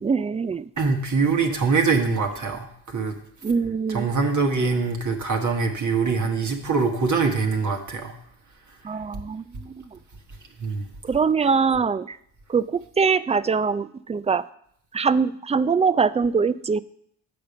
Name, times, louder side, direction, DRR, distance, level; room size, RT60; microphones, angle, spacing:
voice 1, 0.0-0.7 3.4-4.1 8.8-10.0 11.0-12.2 12.5-14.4 14.9-16.8, right 5 dB, 15° right, 17 dB, 0.3 m, -23 dB
voice 2, 0.8-3.1 3.9-8.1 10.6-10.8, right 4 dB, 45° right, 2 dB, 1.4 m, -23 dB
7.8 x 5.1 x 7.0 m, 0.68 s
supercardioid pair, 60°, 40 cm